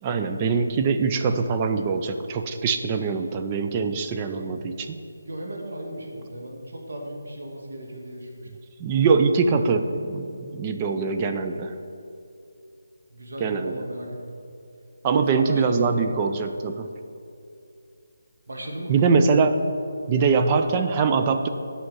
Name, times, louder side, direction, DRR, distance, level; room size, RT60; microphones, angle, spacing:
voice 1, 0.0-5.0 8.8-11.7 13.4-13.7 15.0-16.9 18.9-19.6 20.1-21.5, right 5 dB, 20° right, 6 dB, 0.5 m, -23 dB
voice 2, 5.2-8.5 13.1-14.4 15.0-16.0 18.5-19.5, right 1 dB, 70° right, -1 dB, 2.1 m, -36 dB
8.5 x 5.6 x 7.7 m, 2.6 s
figure-of-eight pair, 165°, 0 cm